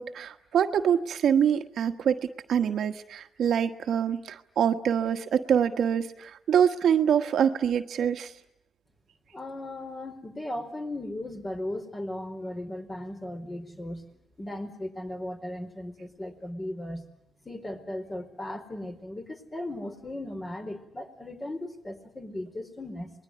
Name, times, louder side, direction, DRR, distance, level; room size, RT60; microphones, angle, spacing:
voice 1, 0.0-2.2 2.5-8.3, right 8 dB, 70° right, 7 dB, 1.4 m, -25 dB
voice 2, 9.3-14.0 14.4-17.1 17.4-23.1, left 1 dB, 25° left, 6 dB, 4.5 m, -37 dB
26.5 x 21.0 x 9.6 m, 0.80 s
cardioid pair, 80°, 0 cm